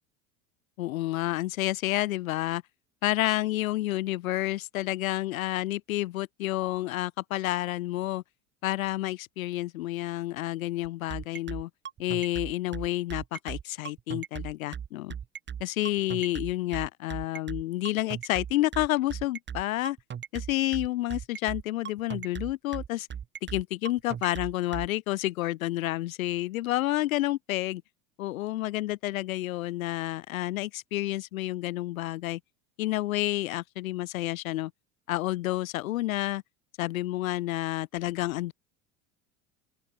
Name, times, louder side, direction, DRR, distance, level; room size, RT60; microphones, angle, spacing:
voice 1, 0.8-2.6 3.0-8.2 8.6-11.7 12.0-15.1 15.6-20.0 20.3-23.1 23.5-27.8 28.2-32.4 32.8-34.7 35.1-36.4 36.8-38.5, left 16 dB, 70° left, 1.2 m, -30 dB
sound 1, 10.8-24.9, right 8 dB, 25° right, 1.4 m, -37 dB
open air
figure-of-eight pair, 75°, 43 cm